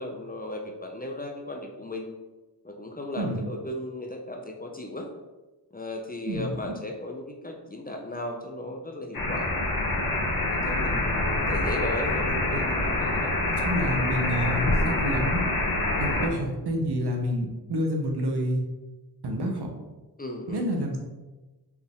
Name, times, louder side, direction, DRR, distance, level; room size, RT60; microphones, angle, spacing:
voice 1, 0.0-2.1 2.6-5.1 5.7-9.6 10.5-13.3 16.0-16.2 20.2-20.6, left 1 dB, 25° left, 2 dB, 0.4 m, -36 dB
voice 2, 6.3-6.7 12.5-12.6 13.4-15.4 16.0-18.6 19.2-19.7 20.5-21.0, equal, 70° right, 1 dB, 0.8 m, -28 dB
sound 1, 9.1-16.3, left 2 dB, 55° left, 0.9 m, -26 dB
4.4 x 2.4 x 3.5 m, 1.1 s
wide cardioid pair, 75°, 40 cm